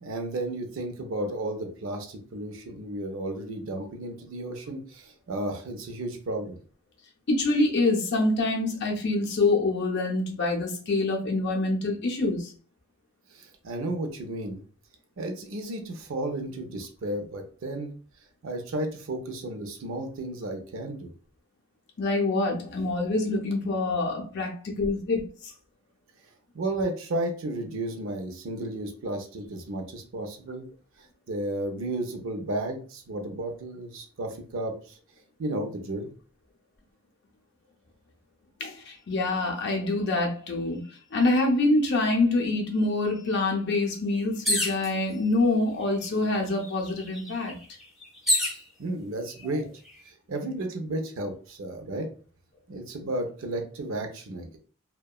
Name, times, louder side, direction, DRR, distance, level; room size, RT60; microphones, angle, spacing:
voice 1, 0.0-6.5 13.3-14.6 15.2-17.9 18.4-21.1 26.5-30.7 31.3-35.0 35.4-36.1 48.8-49.7 50.1-52.1 52.7-54.6, right 1 dB, 65° right, 5 dB, 0.5 m, -33 dB
voice 2, 7.3-12.5 22.0-25.5 38.6-40.8 41.1-47.6, left 2 dB, 50° left, 0 dB, 0.5 m, -26 dB
sound 1, 44.4-44.9 45.8-45.9 46.2-48.6 49.4-49.9, left 1 dB, ahead, 0.4 m, -28 dB
2.7 x 2.2 x 2.3 m, 0.41 s
head